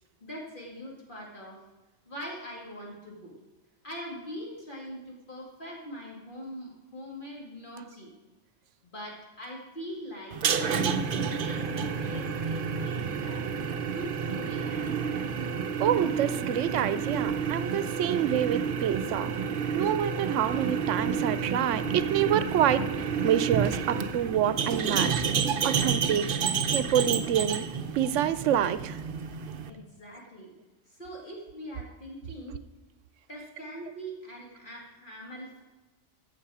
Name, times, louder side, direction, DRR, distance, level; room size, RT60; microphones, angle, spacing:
voice 1, 0.2-1.6 2.1-3.4 3.8-8.1 8.8-13.5 13.9-15.4 29.6-30.5 30.9-32.6 33.3-35.6, equal, 45° left, -3 dB, 2.3 m, -42 dB
sound 1, 10.3-29.7, right 6 dB, 55° right, 0.8 m, -30 dB
voice 2, 15.8-19.3 19.7-26.3 26.7-27.7 28.0-29.0, right 10 dB, 85° right, 14 dB, 0.9 m, -27 dB
14.5 x 7.3 x 4.8 m, 1.1 s
omnidirectional pair, 1.2 m